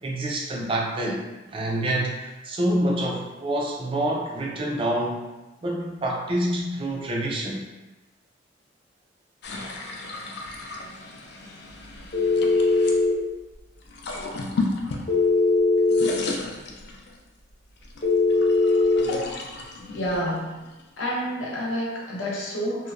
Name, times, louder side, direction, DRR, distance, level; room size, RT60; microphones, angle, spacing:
voice 1, 0.0-1.2 1.5-5.2 5.6-7.6, right 1 dB, 25° right, -2 dB, 0.4 m, -27 dB
sound 1, 9.4-13.0 13.8-15.5 15.8-17.3 17.8-21.2, left 3 dB, 60° left, 0.3 m, -34 dB
Telephone, 12.1-13.2 15.1-16.1 18.0-19.1, left 3 dB, 35° left, 0.9 m, -20 dB
voice 2, 19.9-20.6 21.0-22.9, equal, 75° left, -5 dB, 0.7 m, -29 dB
2.8 x 2.0 x 2.4 m, 1.1 s
head